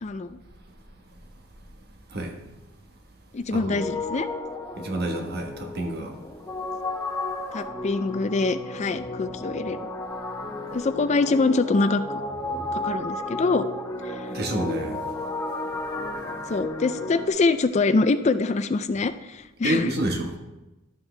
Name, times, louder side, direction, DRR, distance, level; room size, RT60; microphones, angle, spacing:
voice 1, 0.0-0.4 3.3-4.3 7.5-9.8 10.7-12.0 12.7-13.7 14.0-14.3 16.5-19.9, left 3 dB, 35° left, 11 dB, 0.4 m, -24 dB
sound 1, 3.7-17.3, left 2 dB, 15° left, 1.0 m, -33 dB
voice 2, 4.8-6.1 14.3-15.0 19.6-20.4, right 1 dB, 55° right, 3 dB, 1.3 m, -28 dB
12.0 x 7.2 x 3.3 m, 1.0 s
head